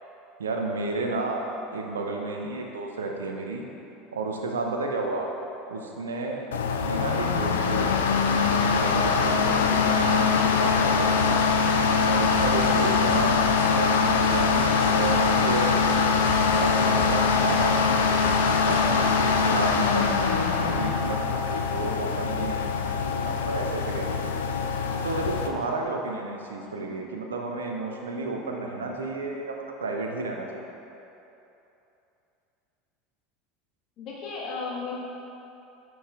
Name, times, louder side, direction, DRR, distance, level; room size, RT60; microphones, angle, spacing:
voice 1, 0.4-1.5 1.7-3.7 4.1-5.3 5.7-8.0 8.4-11.4 12.1-16.0 16.5-24.3 25.0-30.7, right 3 dB, 75° right, 1 dB, 0.5 m, -32 dB
sound 1, 6.5-25.5, left 5 dB, 70° left, 0.3 m, -23 dB
sound 2, 11.2-18.8, right 3 dB, 55° right, 1.5 m, -37 dB
voice 2, 26.6-26.9 34.0-34.9, left 4 dB, 45° left, -5 dB, 1.5 m, -36 dB
9.2 x 4.6 x 2.5 m, 2.9 s
figure-of-eight pair, 75°, 0 cm